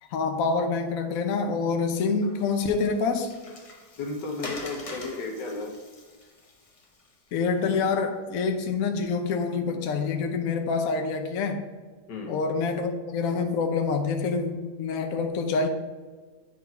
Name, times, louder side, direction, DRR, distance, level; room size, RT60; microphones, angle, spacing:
voice 1, 0.1-3.3 7.3-11.7 12.3-15.7, left 4 dB, 60° left, 5 dB, 1.0 m, -26 dB
Water, 2.2-7.6, left 2 dB, 35° left, 0.6 m, -44 dB
voice 2, 3.9-5.8 12.1-12.4, left 3 dB, 85° left, 2 dB, 1.7 m, -34 dB
9.3 x 4.1 x 4.3 m, 1.4 s
omnidirectional pair, 1.9 m